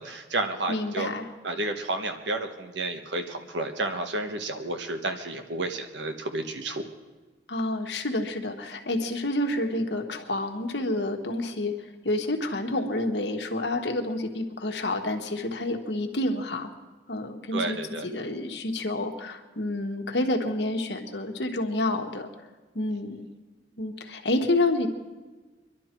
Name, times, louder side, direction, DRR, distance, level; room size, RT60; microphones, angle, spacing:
voice 1, 0.0-1.1 1.4-6.9 17.5-18.1, right 2 dB, 85° right, 6 dB, 1.3 m, -31 dB
voice 2, 0.7-1.2 7.5-11.7 12.0-16.7 17.1-17.8 18.0-22.3 22.7-23.3 23.8-24.9, left 1 dB, 75° left, 4 dB, 1.5 m, -29 dB
23.5 x 11.5 x 4.5 m, 1.3 s
head